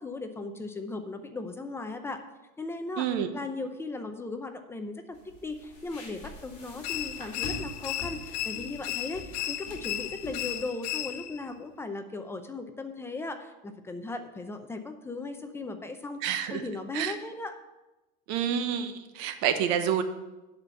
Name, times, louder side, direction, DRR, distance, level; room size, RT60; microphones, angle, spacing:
voice 1, 0.0-2.2 2.6-16.2 16.5-17.5, left 3 dB, 10° left, 7 dB, 0.6 m, -37 dB
voice 2, 3.0-3.3 16.2-16.6 16.9-17.1 18.3-20.0, right 9 dB, 65° right, 8 dB, 1.0 m, -28 dB
sound 1, 5.1-10.7, left 2 dB, 35° left, 3.1 m, -44 dB
sound 2, 6.8-11.5, left 13 dB, 80° left, 0.7 m, -35 dB
10.5 x 4.3 x 6.9 m, 1.1 s
supercardioid pair, 140°, 21 cm